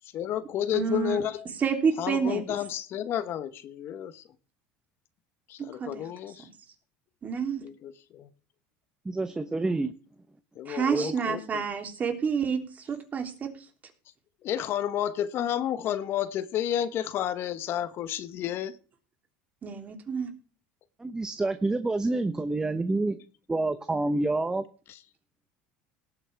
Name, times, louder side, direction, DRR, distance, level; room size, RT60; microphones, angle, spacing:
voice 1, 0.1-1.4 2.0-4.2 5.5-6.5 7.6-8.3 10.5-11.6 14.4-18.8 24.9-25.0, left 10 dB, 50° left, 13 dB, 1.1 m, -31 dB
voice 2, 0.7-1.2 1.6-2.6 5.6-6.1 6.4-6.5 7.2-7.7 10.6-13.7 19.6-20.3, right 6 dB, 35° right, 4 dB, 3.2 m, -29 dB
voice 3, 9.0-9.9 10.9-11.1 21.0-23.2 23.5-24.6, right 2 dB, 15° right, 10 dB, 1.0 m, -28 dB
18.5 x 8.4 x 3.5 m, 0.38 s
supercardioid pair, 100°, 5 cm